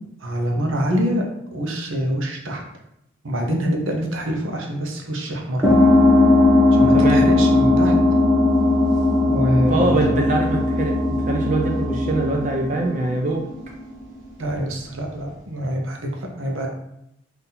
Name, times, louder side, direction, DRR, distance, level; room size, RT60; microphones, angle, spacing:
voice 1, 0.2-1.2 1.5-2.6 3.2-5.6 6.8-7.9 9.3-10.0 14.4-16.1 16.4-16.7, equal, 85° right, 1 dB, 0.8 m, -25 dB
sound 1, 5.6-13.8, left 2 dB, 15° right, 1.2 m, -18 dB
voice 2, 6.9-7.2 9.6-11.0 11.3-13.4, right 2 dB, 40° right, 0 dB, 0.4 m, -23 dB
4.0 x 2.7 x 4.0 m, 0.82 s
head